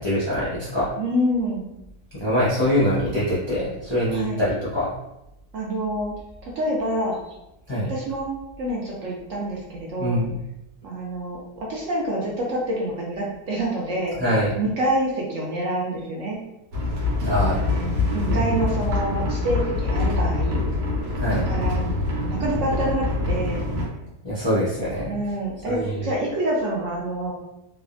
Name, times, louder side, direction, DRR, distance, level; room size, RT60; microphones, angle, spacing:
voice 1, 0.0-0.9 2.1-4.9 7.7-7.9 10.0-10.3 14.2-14.5 17.2-17.6 18.3-18.6 21.2-21.4 24.2-25.1 25.6-26.1, equal, 30° left, -10 dB, 0.5 m, -24 dB
voice 2, 1.0-1.7 4.1-4.4 5.5-6.1 6.4-7.2 7.9-8.3 8.6-10.2 10.8-14.2 14.6-16.4 17.5-20.6 21.3-21.8 22.2-23.7 25.1-27.3, right 1 dB, 65° right, -3 dB, 0.8 m, -27 dB
sound 1, 16.7-23.8, left 3 dB, 80° right, 1.2 m, -25 dB
3.2 x 2.0 x 2.4 m, 0.87 s
omnidirectional pair, 1.6 m